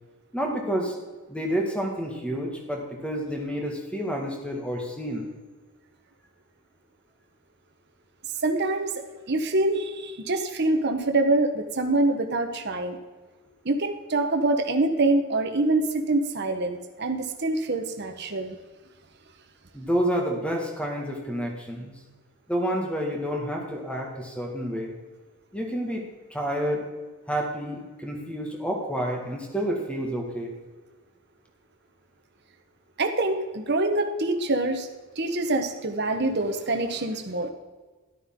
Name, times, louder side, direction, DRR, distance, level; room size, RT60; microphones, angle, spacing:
voice 1, 0.3-1.0 1.3-5.3 19.7-21.9 22.5-24.9 25.5-26.0 26.3-26.8 27.3-30.5, equal, 5° left, 0 dB, 1.9 m, -29 dB
voice 2, 8.4-8.9 9.3-13.0 13.6-18.6 33.0-34.9 35.2-37.5, right 2 dB, 50° right, 6 dB, 1.2 m, -25 dB
13.5 x 12.0 x 3.8 m, 1.3 s
head